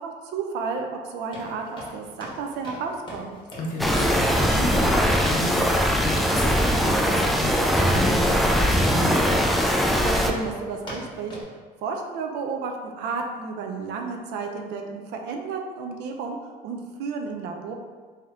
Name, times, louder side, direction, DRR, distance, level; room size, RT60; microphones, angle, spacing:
voice 1, 0.0-3.4 10.0-11.3 11.8-16.4 16.6-17.7, right 4 dB, 90° right, 3 dB, 0.5 m, -32 dB
sound 1, 1.3-11.4, equal, 30° left, 1.5 m, -41 dB
voice 2, 3.5-9.4, left 1 dB, 50° left, -1 dB, 0.8 m, -32 dB
sound 2, 3.8-10.3, equal, ahead, 0.3 m, -21 dB
3.4 x 2.8 x 3.6 m, 1.5 s
cardioid pair, 110°, 17 cm